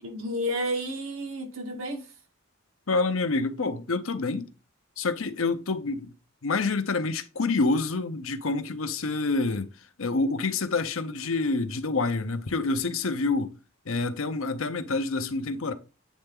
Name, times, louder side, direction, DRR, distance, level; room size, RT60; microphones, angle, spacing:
voice 1, 0.0-2.1, equal, 85° right, 1.5 m, -31 dB
voice 2, 2.9-4.5 5.0-6.1 6.4-9.7 10.0-13.5 13.9-15.7, left 3 dB, 80° left, 0.8 m, -27 dB
8.5 x 3.3 x 3.5 m
head